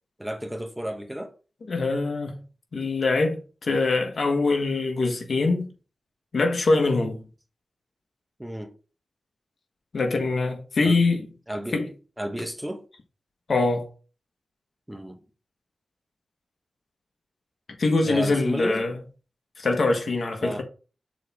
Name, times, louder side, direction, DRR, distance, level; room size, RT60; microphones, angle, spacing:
voice 1, 0.2-1.3 8.4-8.7 10.8-11.0 11.5-11.8 12.2-12.8 14.9-15.2 18.0-18.9 20.4-20.6, right 1 dB, 10° right, 1.1 m, -32 dB
voice 2, 1.7-2.4 2.7-5.7 6.3-7.3 9.9-11.3 11.7-11.9 13.5-13.9 17.8-18.9 19.6-20.6, left 3 dB, 60° left, 1.4 m, -23 dB
6.7 x 4.2 x 3.6 m
cardioid pair, 75°, 0 cm